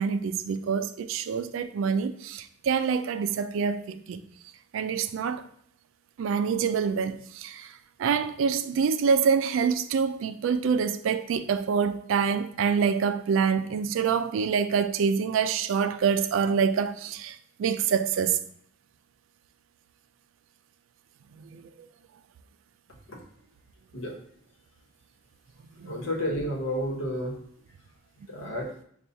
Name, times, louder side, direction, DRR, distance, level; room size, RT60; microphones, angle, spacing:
voice 1, 0.0-4.2 4.7-5.5 6.2-18.4 21.4-21.9 25.8-25.9 28.4-28.5, right 6 dB, 80° right, 0.3 m, -26 dB
voice 2, 25.8-27.4 28.3-28.8, equal, 85° left, 1.0 m, -31 dB
5.5 x 2.3 x 2.7 m
head